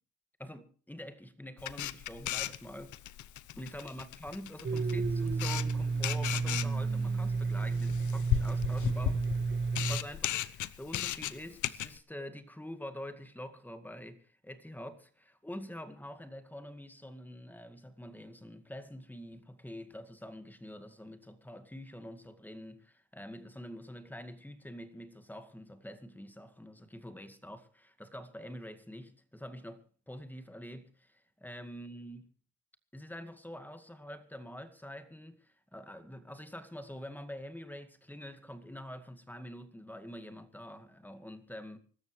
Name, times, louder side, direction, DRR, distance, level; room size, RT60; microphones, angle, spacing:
voice 1, 0.4-3.0 3.6-9.2 9.9-32.2 32.9-41.8, equal, 5° left, 2.1 m, -46 dB
Camera, 1.6-12.0, left 12 dB, 75° left, 0.9 m, -36 dB
Domestic sounds home sounds, 4.6-10.0, right 4 dB, 40° right, 2.0 m, -31 dB
25.0 x 13.5 x 3.3 m
cardioid pair, 90°, 30 cm